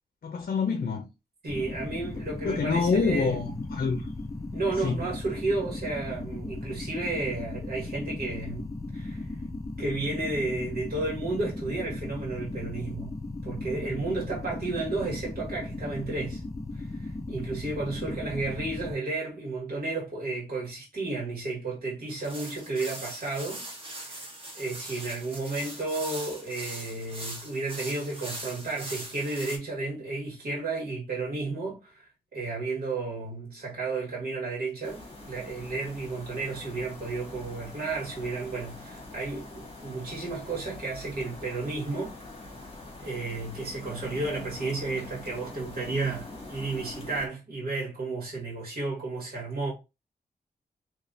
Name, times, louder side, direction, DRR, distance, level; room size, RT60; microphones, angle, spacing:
voice 1, 0.2-1.1 2.4-4.1 4.8-5.0, left 5 dB, 65° left, 0.6 m, -26 dB
voice 2, 1.4-3.4 4.5-9.2 9.8-13.1 13.4-16.4 16.7-23.7 24.0-24.2 24.5-42.1 43.0-49.7, right 3 dB, 80° right, 1.7 m, -32 dB
sound 1, 1.5-18.9, left 2 dB, 20° left, 0.6 m, -37 dB
sound 2, 22.1-29.6, right 1 dB, 35° right, 1.4 m, -41 dB
sound 3, 34.8-47.3, left 2 dB, 40° left, 1.3 m, -44 dB
3.6 x 2.9 x 2.7 m
wide cardioid pair, 90°, 16 cm